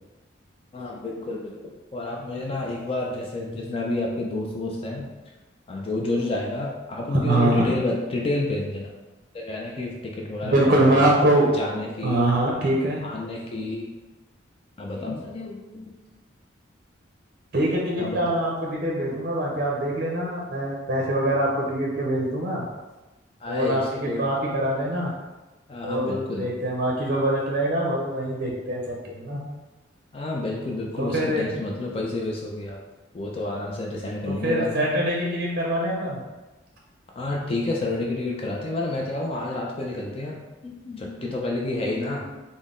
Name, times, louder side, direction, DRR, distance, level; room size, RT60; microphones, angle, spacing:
voice 1, 0.7-5.1 5.7-8.9 9.3-11.0 11.6-12.2 13.0-13.9 14.8-15.9 18.0-18.3 23.4-24.3 25.7-26.5 30.1-32.8 33.1-35.0 37.2-42.3, left 2 dB, 30° left, -1 dB, 0.3 m, -30 dB
voice 2, 7.1-7.7 10.5-11.5 12.0-13.0 17.5-22.7 23.5-25.1 25.8-29.4 31.0-31.5 34.2-36.2, right 1 dB, 50° right, -2 dB, 0.5 m, -24 dB
3.8 x 2.0 x 3.6 m, 1.1 s
head